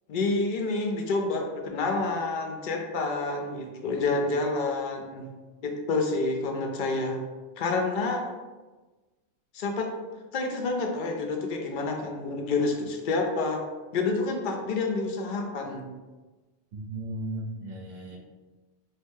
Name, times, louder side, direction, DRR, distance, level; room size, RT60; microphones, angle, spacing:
voice 1, 0.1-5.2 5.6-7.2 7.6-8.2 9.5-9.9 10.3-13.6 13.9-15.9, left 3 dB, 60° left, 2 dB, 0.5 m, -28 dB
voice 2, 16.7-18.2, right 1 dB, 60° right, -1 dB, 0.9 m, -36 dB
2.7 x 2.6 x 3.5 m, 1.2 s
omnidirectional pair, 1.2 m